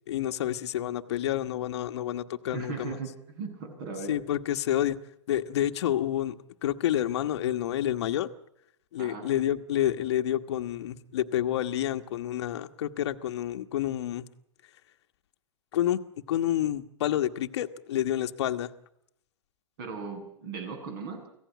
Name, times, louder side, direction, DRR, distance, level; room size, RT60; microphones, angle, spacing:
voice 1, 0.1-3.0 4.1-5.0 5.3-6.4 6.6-8.3 8.9-14.3 15.7-16.0 16.3-18.7, left 12 dB, 60° left, 6 dB, 1.3 m, -29 dB
voice 2, 2.5-4.1 9.0-9.3 19.8-21.3, right 4 dB, 50° right, 6 dB, 7.5 m, -37 dB
25.0 x 16.5 x 9.2 m, 0.77 s
hypercardioid pair, 155°, 16 cm